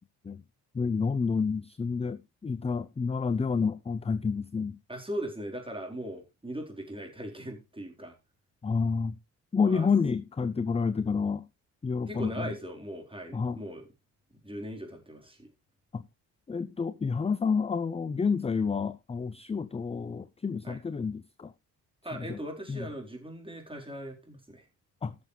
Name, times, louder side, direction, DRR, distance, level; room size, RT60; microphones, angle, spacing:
voice 1, 0.7-4.8 8.6-9.2 9.5-11.4 11.8-12.5 13.3-13.6 15.9-16.0 16.5-21.5 22.1-22.4 22.7-22.9 25.0-25.2, left 5 dB, 15° left, 0.5 m, -29 dB
voice 2, 4.9-8.2 9.6-9.9 12.1-13.9 14.4-15.5 20.6-20.8 22.0-24.6, right 1 dB, 10° right, 4.2 m, -39 dB
17.0 x 6.9 x 3.3 m
hypercardioid pair, 50°, 45 cm